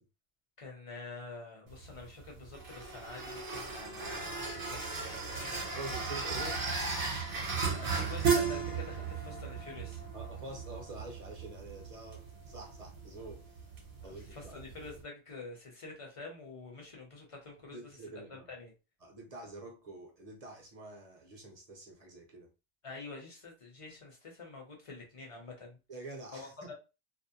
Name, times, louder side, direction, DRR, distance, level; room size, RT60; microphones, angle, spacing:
voice 1, 0.6-5.7 7.7-10.0 14.0-18.0 18.3-18.7 22.8-25.8 26.3-26.7, left 3 dB, 35° left, 0.8 m, -47 dB
sound 1, 1.7-15.0, right 5 dB, 55° right, 0.9 m, -36 dB
voice 2, 5.8-6.6 10.1-13.6 14.0-14.5 17.7-18.5 19.0-22.5 25.9-26.7, right 2 dB, 40° right, 0.7 m, -47 dB
2.5 x 2.0 x 2.7 m
omnidirectional pair, 1.2 m